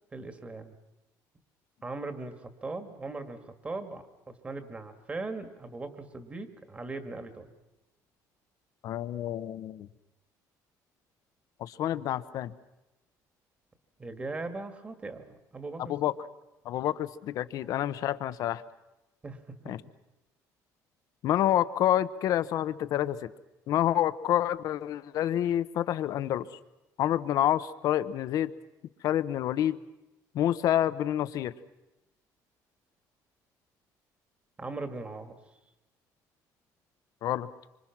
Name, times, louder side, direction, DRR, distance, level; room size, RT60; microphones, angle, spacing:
voice 1, 0.1-0.7 1.8-7.5 14.0-16.0 19.2-19.7 34.6-35.4, right 3 dB, 20° right, 8 dB, 1.9 m, -39 dB
voice 2, 8.8-9.9 11.6-12.5 15.9-16.1 16.6-18.6 19.7-19.8 21.2-23.3 23.7-26.5 27.0-28.5 29.0-29.8 30.3-31.5 37.2-37.5, left 12 dB, 60° left, 14 dB, 0.9 m, -28 dB
26.5 x 25.5 x 6.0 m, 0.97 s
cardioid pair, 155°, 7 cm